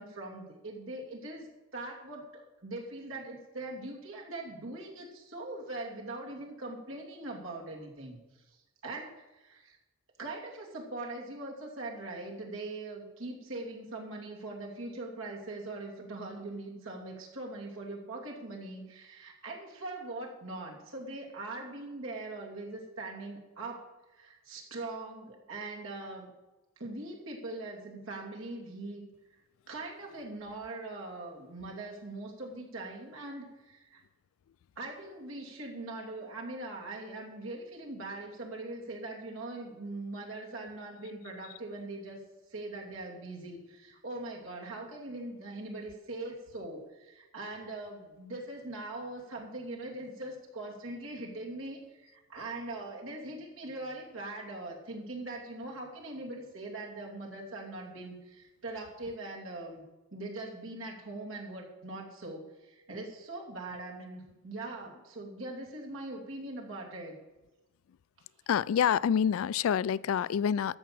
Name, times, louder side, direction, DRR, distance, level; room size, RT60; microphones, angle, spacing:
voice 1, 0.0-1.5 1.7-9.8 10.2-23.8 24.1-26.3 26.8-29.1 29.7-34.0 34.8-42.2 42.5-59.8 60.1-67.2, right 2 dB, 80° right, -1 dB, 2.7 m, -41 dB
voice 2, 68.5-70.8, left 8 dB, 90° left, 21 dB, 0.3 m, -27 dB
13.5 x 5.8 x 7.5 m, 1.1 s
head